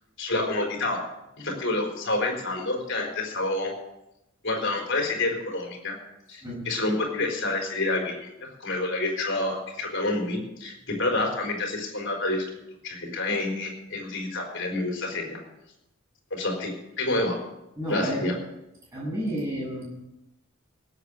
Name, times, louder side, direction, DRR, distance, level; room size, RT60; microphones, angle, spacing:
voice 1, 0.2-1.0 1.4-3.7 4.4-6.0 6.3-12.4 12.8-15.4 16.3-16.7 17.0-17.4 17.9-18.3, left 2 dB, 60° left, 2 dB, 4.2 m, -28 dB
voice 2, 17.8-18.3 18.9-19.8, equal, 15° right, -4 dB, 7.3 m, -30 dB
18.0 x 8.3 x 6.8 m, 0.90 s
head